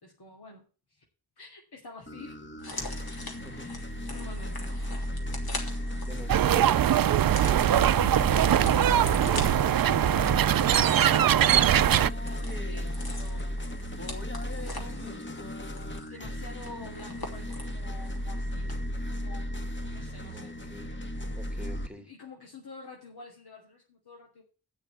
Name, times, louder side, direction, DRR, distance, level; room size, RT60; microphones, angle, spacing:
voice 1, 0.0-1.0 1.4-2.4 3.5-4.7 10.4-13.6 14.3-15.3 16.1-19.7 19.9-20.6 22.0-24.4, left 3 dB, 85° left, 2.9 m, -48 dB
sound 1, 2.1-21.9, equal, 30° left, 1.5 m, -35 dB
sound 2, 2.6-18.3 18.6-18.7, left 2 dB, 70° left, 3.1 m, -43 dB
sound 3, 6.3-12.1, right 11 dB, 65° right, 0.5 m, -22 dB
voice 2, 20.3-21.0 21.3-22.1, right 1 dB, 5° right, 1.8 m, -45 dB
9.1 x 6.4 x 8.6 m
wide cardioid pair, 95°, 38 cm